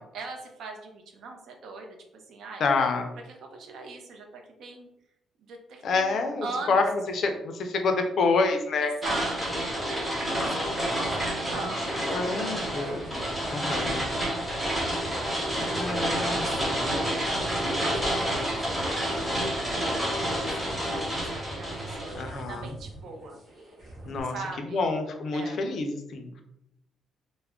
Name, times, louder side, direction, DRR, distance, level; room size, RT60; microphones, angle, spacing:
voice 1, 0.0-2.6 3.3-4.9 5.4-6.8 8.8-13.0 13.7-13.9 14.7-14.9 15.8-17.2 17.7-23.4 24.3-24.9 25.3-25.6, right 3 dB, 65° right, 3 dB, 0.5 m, -41 dB
voice 2, 2.6-3.1 5.8-8.9 11.6-11.7 12.1-13.1 13.5-14.1 15.8-16.8 22.1-22.7 24.1-24.4 24.7-26.4, left 3 dB, 55° left, 5 dB, 0.4 m, -28 dB
sound 1, 9.0-22.1, equal, 10° right, 0.9 m, -29 dB
sound 2, 10.9-24.2, right 2 dB, 35° right, 0.9 m, -44 dB
2.3 x 2.0 x 3.5 m, 0.81 s
cardioid pair, 150°, 0 cm